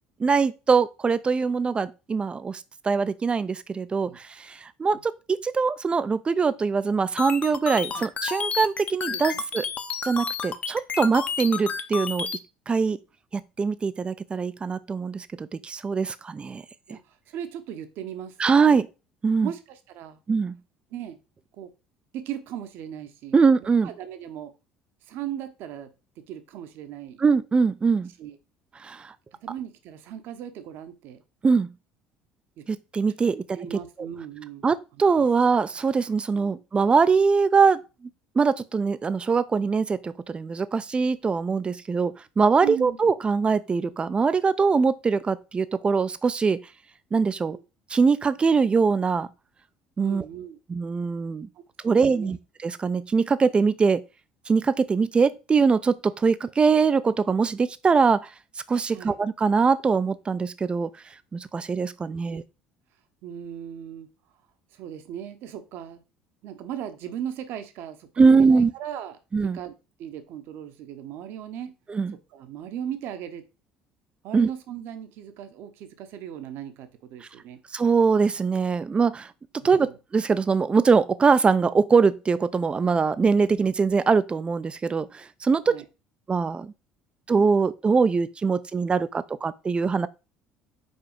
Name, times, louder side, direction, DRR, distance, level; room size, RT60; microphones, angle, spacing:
voice 1, 0.2-9.6 10.0-12.3 12.7-13.0 13.3-16.6 18.4-18.9 19.2-19.5 20.3-20.5 23.3-23.9 27.2-28.1 28.8-29.1 31.4-31.7 32.7-33.8 34.6-37.8 38.4-46.6 47.1-47.6 47.9-49.3 50.0-50.2 50.7-51.5 51.8-52.4 52.6-54.0 54.5-58.3 58.7-60.9 61.3-62.4 68.2-68.7 69.3-69.6 71.9-72.1 74.3-74.5 77.7-79.3 79.6-79.9 80.1-85.8 86.3-86.7 87.3-90.1, right 5 dB, 25° right, 0.5 m, -22 dB
sound 1, 7.2-12.4, left 6 dB, 30° left, 1.0 m, -30 dB
voice 2, 9.1-9.4 16.9-18.4 18.6-18.8 19.4-20.2 20.9-21.2 21.6-21.7 22.1-24.5 25.1-27.2 28.2-28.4 29.4-31.2 32.6-32.7 33.2-34.7 35.2-35.3 36.4-36.6 42.6-43.0 50.0-50.6 51.8-52.3 58.9-59.2 62.3-62.4 63.2-64.1 64.7-66.0 66.4-69.7 70.0-71.7 72.3-73.5 74.2-77.6 79.6-80.0 85.7-85.8, right 10 dB, 55° right, 1.0 m, -37 dB
5.4 x 4.6 x 5.1 m
figure-of-eight pair, 60°, 4 cm